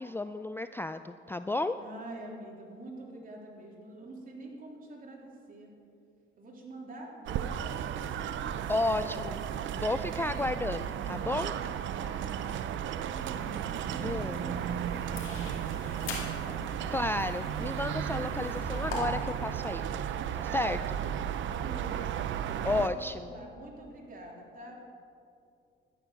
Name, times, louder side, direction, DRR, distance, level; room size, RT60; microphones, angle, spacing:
voice 1, 0.0-1.8 8.7-9.4 9.7-11.5 14.0-14.4 16.9-19.8 20.3-20.8 22.6-23.3, left 2 dB, 10° left, 10 dB, 0.3 m, -32 dB
voice 2, 1.8-5.7 6.4-9.8 11.6-17.0 20.5-21.0 21.5-22.9 23.1-24.8, right 1 dB, 45° right, -1 dB, 3.2 m, -46 dB
sound 1, 7.3-22.9, right 9 dB, 75° right, 0.6 m, -34 dB
sound 2, 13.2-19.0, left 4 dB, 80° left, 2.7 m, -45 dB
12.5 x 9.8 x 6.2 m, 2.4 s
cardioid pair, 90°, 20 cm